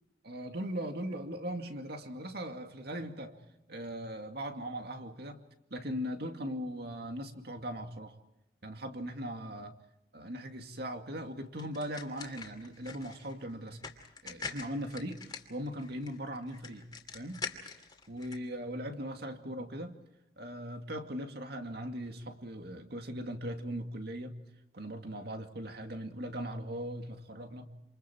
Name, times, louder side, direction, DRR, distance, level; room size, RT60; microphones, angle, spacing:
voice 1, 0.2-3.4 3.7-5.4 5.7-8.1 8.6-9.7 10.1-13.8 14.2-16.9 17.1-17.4 18.1-20.0 20.4-24.3 24.7-27.6, equal, 55° right, 5 dB, 2.3 m, -39 dB
sound 1, 11.6-18.4, left 4 dB, 20° left, 2.6 m, -45 dB
28.5 x 27.0 x 4.5 m, 0.87 s
head